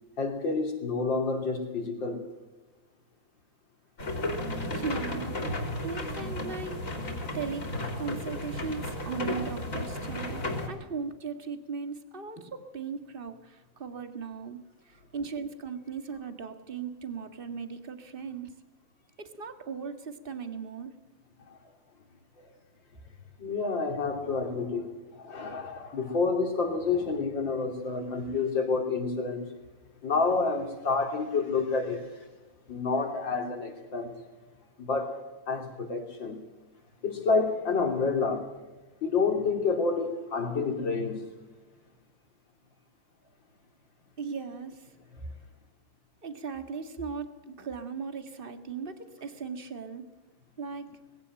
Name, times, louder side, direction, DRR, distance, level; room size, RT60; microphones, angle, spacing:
voice 1, 0.2-2.3 21.5-21.6 22.4-22.5 23.4-29.4 30.0-32.3 32.7-34.1 34.8-36.4 37.0-38.5 39.0-41.3, left 4 dB, 70° left, 3.8 m, -29 dB
sound 1, 4.0-10.7, left 1 dB, 40° left, 4.0 m, -34 dB
voice 2, 4.7-5.4 5.8-6.8 7.3-7.7 8.0-14.6 14.9-18.5 19.2-21.0 44.2-44.9 46.2-50.1 50.6-51.0, right 5 dB, 30° right, 1.8 m, -38 dB
20.0 x 17.0 x 7.7 m
omnidirectional pair, 2.2 m